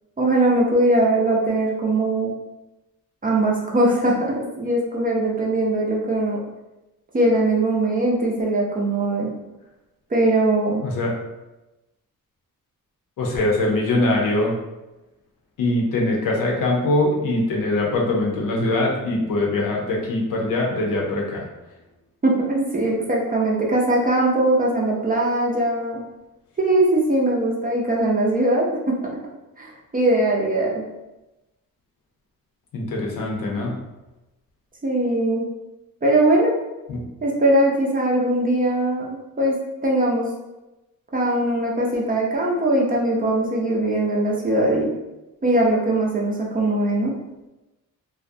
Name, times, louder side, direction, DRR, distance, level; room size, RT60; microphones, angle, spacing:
voice 1, 0.2-2.3 3.2-6.4 7.1-9.3 10.1-10.8 22.2-26.0 26.6-28.9 29.6-30.9 34.8-35.4 36.0-36.5 37.2-39.6 39.8-40.3 41.1-44.9 45.4-47.1, right 1 dB, 25° right, -3 dB, 0.5 m, -20 dB
voice 2, 10.8-11.1 13.2-14.6 15.6-21.5 32.7-33.7 36.9-37.0, left 2 dB, 70° left, -1 dB, 0.6 m, -22 dB
2.3 x 2.1 x 2.6 m, 1.0 s
cardioid pair, 110°, 34 cm